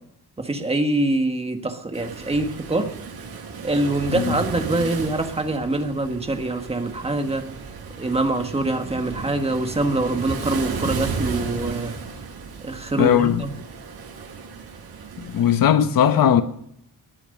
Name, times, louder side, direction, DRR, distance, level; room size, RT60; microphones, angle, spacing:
voice 1, 0.4-2.9 3.6-7.5 8.0-11.9 12.6-13.5, right 2 dB, 15° right, 1.5 m, -24 dB
Waves surf, 1.9-15.5, right 5 dB, 85° right, 8.0 m, -34 dB
voice 2, 13.0-13.4 15.2-16.4, left 9 dB, 65° left, 1.2 m, -18 dB
20.0 x 10.5 x 6.6 m
wide cardioid pair, 175°, 36 cm